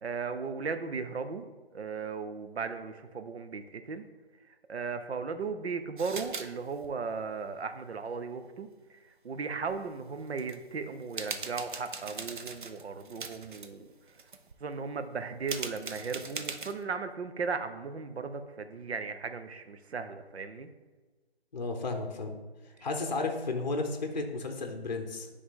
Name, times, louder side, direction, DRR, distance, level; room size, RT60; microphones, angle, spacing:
voice 1, 0.0-4.0 4.5-13.9 14.6-20.7 22.8-22.9, right 5 dB, 85° right, 9 dB, 0.7 m, -36 dB
sound 1, 6.0-6.5 6.7-6.9 9.6-9.7 10.3-10.6 11.0-13.7 14.1-14.5 15.4-16.8, right 4 dB, 50° right, 0.5 m, -40 dB
voice 2, 21.5-22.4 22.8-25.3, left 3 dB, 45° left, 4 dB, 0.7 m, -33 dB
9.6 x 3.3 x 3.7 m, 1.3 s
hypercardioid pair, 180°, 31 cm